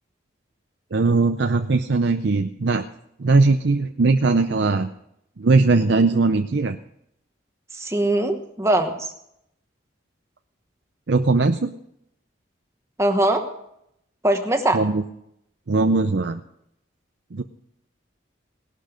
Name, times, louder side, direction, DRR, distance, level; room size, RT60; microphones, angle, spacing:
voice 1, 0.9-2.8 3.2-4.9 5.4-6.8 11.1-11.7 14.7-15.0 15.7-16.4 17.3-17.4, right 3 dB, 60° right, 8 dB, 0.6 m, -19 dB
voice 2, 7.7-9.1 13.0-13.5 14.2-14.8, right 1 dB, 15° right, 6 dB, 1.1 m, -21 dB
18.0 x 12.0 x 5.1 m, 0.78 s
head